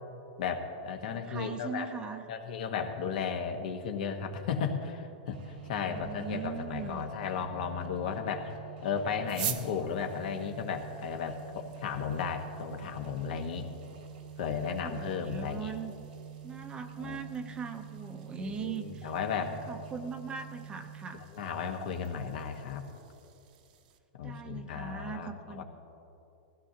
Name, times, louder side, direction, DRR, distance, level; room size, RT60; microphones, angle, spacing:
voice 1, 0.4-1.9 2.3-8.5 8.8-13.7 14.4-15.7 17.0-17.2 18.4-19.6 21.3-22.9 24.2-25.6, left 6 dB, 65° left, 5 dB, 1.3 m, -35 dB
voice 2, 1.1-2.2 5.7-7.0 9.8-9.9 14.8-15.9 16.4-21.2 24.2-25.6, right 6 dB, 20° right, 7 dB, 0.7 m, -40 dB
sound 1, 5.3-21.4, right 7 dB, 85° right, 2.1 m, -47 dB
sound 2, 9.2-24.0, right 11 dB, 60° right, 1.0 m, -47 dB
20.0 x 16.0 x 2.8 m, 2.8 s
hypercardioid pair, 135°, 5 cm